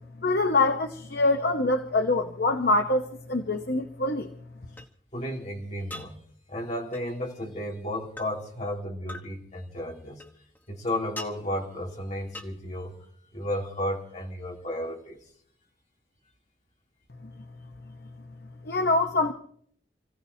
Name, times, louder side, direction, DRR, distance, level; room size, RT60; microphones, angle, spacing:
voice 1, 0.2-4.3 18.7-19.3, left 2 dB, 55° left, 0.9 m, -24 dB
sound 1, 3.5-3.6 4.8-4.9 5.9-6.1 6.9-7.1 8.2-8.3 9.1-9.3 10.2-10.7 11.2-11.3 12.3-12.5, left 2 dB, 10° left, 1.1 m, -40 dB
voice 2, 5.1-6.2 6.5-10.2 10.7-13.1 13.3-15.2, left 1 dB, 35° left, 2.9 m, -33 dB
29.5 x 16.0 x 2.8 m
head